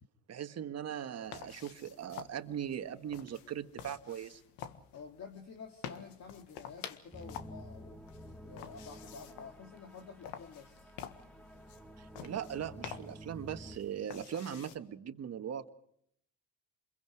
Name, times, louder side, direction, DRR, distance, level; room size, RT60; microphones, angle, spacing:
voice 1, 0.3-4.4 12.0-15.7, right 9 dB, 40° right, 8 dB, 1.6 m, -40 dB
sound 1, 1.2-14.8, left 9 dB, 80° left, 1.7 m, -50 dB
voice 2, 4.9-8.0 8.4-10.9, left 5 dB, 45° left, 3 dB, 2.3 m, -50 dB
sound 2, 7.1-13.8, equal, 5° left, 1.8 m, -51 dB
28.5 x 22.0 x 4.9 m, 0.69 s
supercardioid pair, 90°, 39 cm